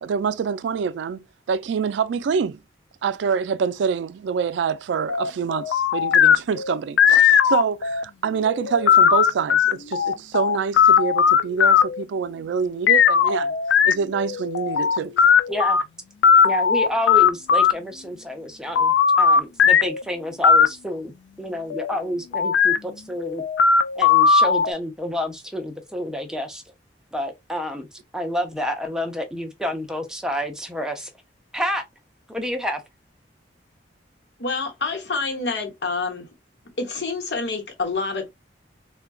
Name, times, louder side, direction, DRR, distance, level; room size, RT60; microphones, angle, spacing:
voice 1, 0.0-2.6 3.0-13.5 13.9-15.1, right 6 dB, 80° right, 0.3 m, -26 dB
sound 1, 5.1-8.0 8.5-12.0 12.9-15.8 16.2-17.7 18.8-20.0 20.4-20.7 21.7-21.9 22.3-22.8 23.2-24.7, left 7 dB, 85° left, 0.3 m, -17 dB
voice 2, 15.5-15.8 16.4-21.1 21.4-23.4 24.0-26.6 27.1-27.9 28.1-31.1 31.5-31.8 32.3-32.8, left 1 dB, 5° right, 0.5 m, -29 dB
voice 3, 34.4-36.3 36.8-38.3, left 3 dB, 65° left, 0.9 m, -27 dB
3.7 x 2.2 x 2.3 m
head